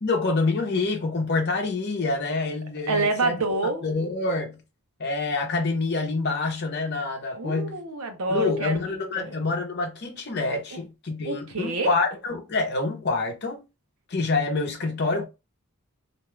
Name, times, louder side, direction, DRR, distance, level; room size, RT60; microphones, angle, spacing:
voice 1, 0.0-3.3 3.8-4.6 5.0-7.8 8.3-13.6 14.1-15.3, left 3 dB, 50° left, 0.7 m, -27 dB
voice 2, 2.9-3.9 7.3-9.3 10.7-10.8 11.2-11.9, right 2 dB, 75° right, 0.7 m, -27 dB
2.6 x 2.3 x 3.1 m
head